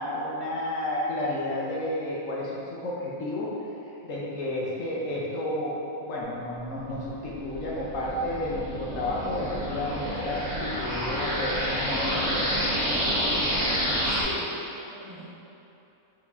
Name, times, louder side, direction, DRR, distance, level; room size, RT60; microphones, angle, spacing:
voice 1, 0.0-3.5 4.0-5.8 6.1-12.5, left 1 dB, 65° left, -5 dB, 1.0 m, -31 dB
sound 1, 6.9-14.2, equal, 75° right, 1.3 m, -29 dB
voice 2, 14.2-15.3, left 1 dB, 30° right, -13 dB, 0.8 m, -40 dB
4.7 x 2.8 x 3.4 m, 2.9 s
omnidirectional pair, 1.6 m